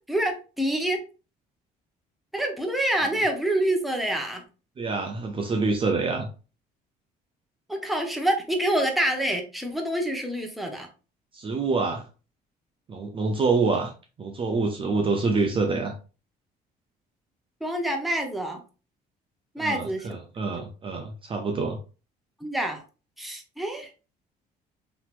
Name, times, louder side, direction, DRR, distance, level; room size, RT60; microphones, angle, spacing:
voice 1, 0.1-1.0 2.3-4.4 7.7-10.9 17.6-18.6 19.5-20.1 20.5-20.6 22.4-22.8 23.2-23.9, right 1 dB, ahead, 2 dB, 0.8 m, -27 dB
voice 2, 4.8-6.3 11.3-12.0 12.9-13.9 14.2-15.9 19.6-21.8, right 4 dB, 30° right, 4 dB, 0.5 m, -26 dB
3.9 x 2.8 x 2.4 m, 0.35 s
cardioid pair, 110°, 17 cm